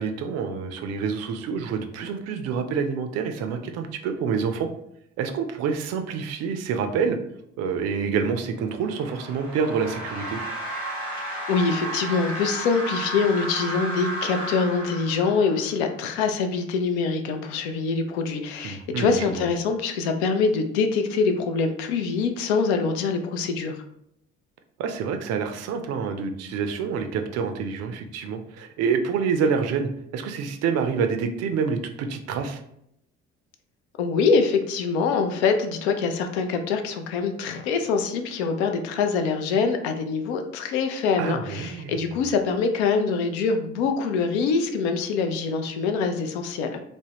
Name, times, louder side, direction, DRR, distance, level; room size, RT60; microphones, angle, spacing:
voice 1, 0.0-4.7 5.2-7.2 7.6-10.4 18.6-19.1 24.8-32.6 41.2-41.9, right 6 dB, 45° right, 7 dB, 0.4 m, -27 dB
sound 1, 8.7-15.7, right 1 dB, 90° left, 1.1 m, -33 dB
voice 2, 11.3-23.8 34.0-46.8, left 5 dB, 65° left, 6 dB, 0.5 m, -24 dB
3.4 x 2.1 x 2.9 m, 0.74 s
figure-of-eight pair, 50°, 36 cm